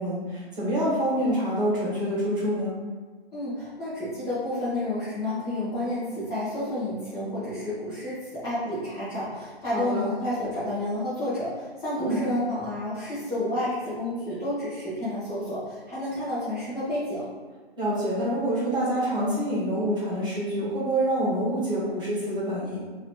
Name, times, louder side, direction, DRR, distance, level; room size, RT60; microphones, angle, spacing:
voice 1, 0.0-2.7 9.7-10.1 12.0-12.2 17.8-22.8, right 1 dB, 15° right, -9 dB, 1.3 m, -26 dB
voice 2, 3.3-8.2 8.4-17.2, left 1 dB, 10° left, -13 dB, 0.9 m, -30 dB
3.0 x 2.8 x 4.4 m, 1.4 s
hypercardioid pair, 140°, 32 cm